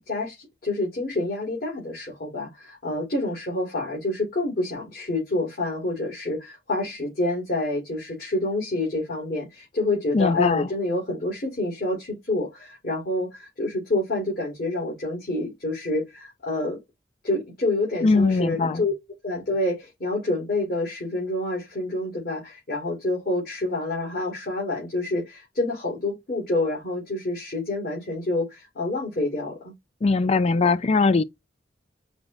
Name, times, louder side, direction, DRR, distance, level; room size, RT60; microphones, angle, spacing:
voice 1, 0.0-16.8 17.2-18.9 19.2-29.7, left 2 dB, 55° left, 2.2 m, -28 dB
voice 2, 10.1-10.7 18.0-18.8 30.0-31.2, left 3 dB, 35° left, 0.4 m, -20 dB
5.1 x 2.6 x 3.1 m
head